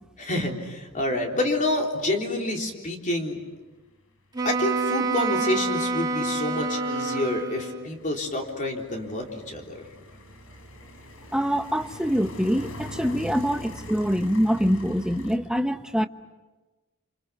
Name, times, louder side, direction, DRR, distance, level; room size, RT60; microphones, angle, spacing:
voice 1, 0.2-3.4 4.4-9.8, left 1 dB, 40° left, 3.7 m, -28 dB
Wind instrument woodwind instrument, 4.3-7.9, right 3 dB, 20° right, 2.2 m, -27 dB
sound 1, 4.7-4.8 5.0-15.4, left 1 dB, 90° left, 4.0 m, -43 dB
voice 2, 11.3-16.1, equal, 5° right, 1.0 m, -24 dB
28.5 x 28.0 x 7.0 m
head